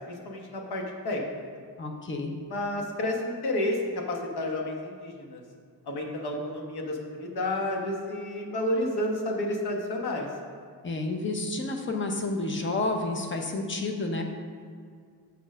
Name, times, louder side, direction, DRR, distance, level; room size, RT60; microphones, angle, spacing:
voice 1, 0.1-1.2 2.5-5.4 5.8-10.3, left 1 dB, 70° left, 1 dB, 1.2 m, -30 dB
voice 2, 1.8-2.3 10.8-14.2, left 2 dB, 30° left, 3 dB, 0.7 m, -30 dB
6.8 x 4.4 x 6.2 m, 2.1 s
wide cardioid pair, 175°, 39 cm